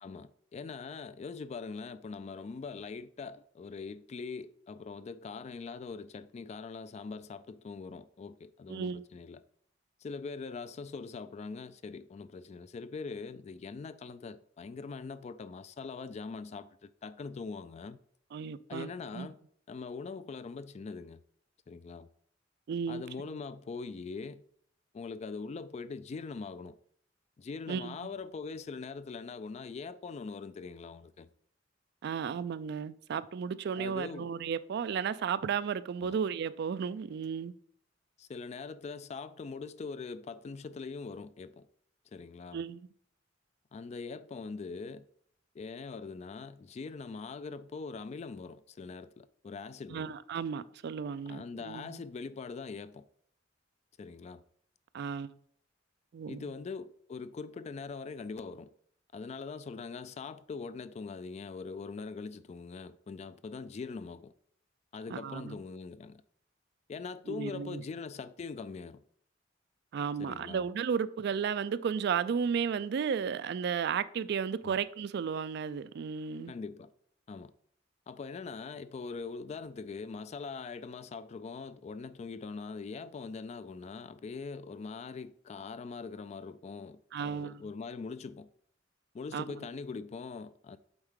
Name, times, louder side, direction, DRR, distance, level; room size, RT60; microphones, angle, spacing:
voice 1, 0.0-9.4 10.0-18.0 18.7-19.4 19.7-21.2 21.7-22.1 22.9-24.4 24.9-26.8 27.4-31.3 33.8-34.3 36.0-36.2 38.2-41.7 42.1-42.6 43.7-45.1 45.5-50.1 51.3-53.1 54.0-54.4 56.3-58.7 59.1-64.3 64.9-66.2 66.9-69.0 70.2-70.7 74.6-74.8 76.5-76.9 77.3-77.5 78.1-88.5 89.1-90.8, left 4 dB, 35° left, 0.3 m, -42 dB
voice 2, 8.7-9.0 18.3-19.3 22.7-23.0 27.7-28.0 32.0-37.5 42.5-42.8 49.9-52.0 54.9-55.3 56.1-56.4 65.1-65.6 67.3-67.8 69.9-76.5 87.1-87.6 89.3-89.4, right 6 dB, 60° right, 0.3 m, -34 dB
7.9 x 4.4 x 3.7 m
head